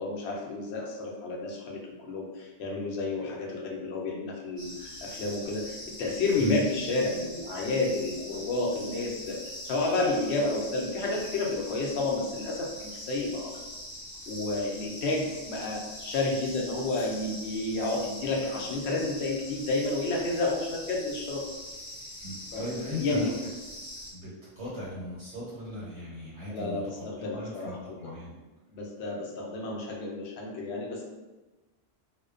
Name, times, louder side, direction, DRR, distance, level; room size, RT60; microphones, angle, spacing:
voice 1, 0.0-13.5 14.3-21.5 22.5-22.6 23.0-23.3 26.5-28.0 28.7-31.0, left 2 dB, 85° left, -1 dB, 0.8 m, -31 dB
sound 1, 4.6-24.1, left 1 dB, 25° left, 0.7 m, -43 dB
voice 2, 22.2-23.3 24.1-28.4, left 1 dB, 70° right, -9 dB, 1.1 m, -37 dB
2.4 x 2.2 x 2.4 m, 1.1 s
omnidirectional pair, 1.1 m